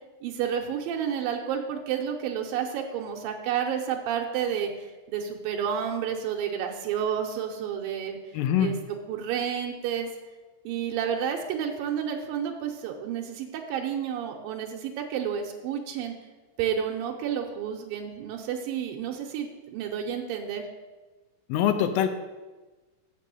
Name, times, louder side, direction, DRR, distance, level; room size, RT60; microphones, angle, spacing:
voice 1, 0.2-8.2 8.6-8.8 9.1-10.1 10.6-16.1 16.6-20.7, right 8 dB, 85° right, 2 dB, 2.5 m, -30 dB
voice 2, 8.3-8.7 21.5-22.1, left 9 dB, 80° left, 9 dB, 2.4 m, -23 dB
7.5 x 6.1 x 6.4 m, 1.2 s
omnidirectional pair, 4.1 m